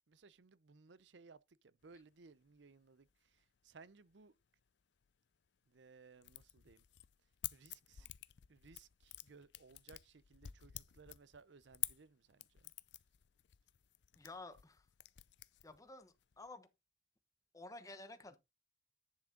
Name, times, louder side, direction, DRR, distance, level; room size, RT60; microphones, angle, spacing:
voice 1, 0.1-4.3 5.7-6.8 7.5-8.1 8.5-12.7, right 4 dB, 80° right, 0.6 m, -62 dB
sound 1, 1.8-2.0 2.5-2.6 2.8-3.6 4.0-4.1 4.6-4.7 5.0-5.8 6.2-16.5, left 16 dB, 75° left, 0.5 m, -50 dB
voice 2, 14.2-14.9 15.6-16.7 17.5-18.4, left 2 dB, 20° left, 1.0 m, -52 dB
10.5 x 6.1 x 3.8 m
head